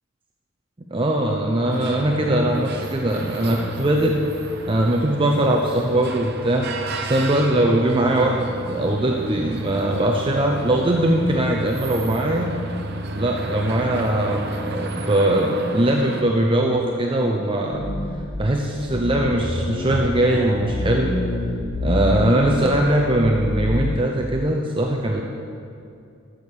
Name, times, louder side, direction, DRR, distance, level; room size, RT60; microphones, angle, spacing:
voice 1, 0.9-4.2 4.7-6.7 7.0-12.5 13.1-17.8 18.4-21.1 21.8-25.2, right 1 dB, 25° right, 0 dB, 0.7 m, -21 dB
sound 1, 1.7-16.2, right 2 dB, 50° right, 0.9 m, -32 dB
sound 2, 17.7-18.3 18.8-23.9, left 1 dB, 80° left, 1.9 m, -27 dB
14.0 x 6.4 x 6.7 m, 2.5 s
head